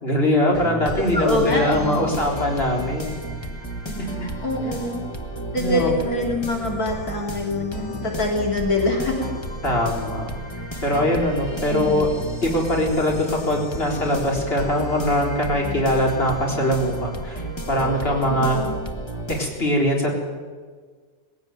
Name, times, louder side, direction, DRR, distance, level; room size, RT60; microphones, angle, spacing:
voice 1, 0.0-3.2 4.0-4.3 5.6-5.9 9.6-10.2 10.8-12.1 12.4-18.6 19.4-20.2, left 1 dB, 40° left, -1 dB, 4.2 m, -22 dB
sound 1, 0.5-19.4, right 1 dB, 20° left, 1.5 m, -32 dB
voice 2, 1.0-2.0 4.4-5.0 5.5-9.3 11.7-12.1 18.3-18.8, left 1 dB, 70° left, -1 dB, 3.4 m, -25 dB
21.0 x 16.0 x 9.4 m, 1.5 s
omnidirectional pair, 1.6 m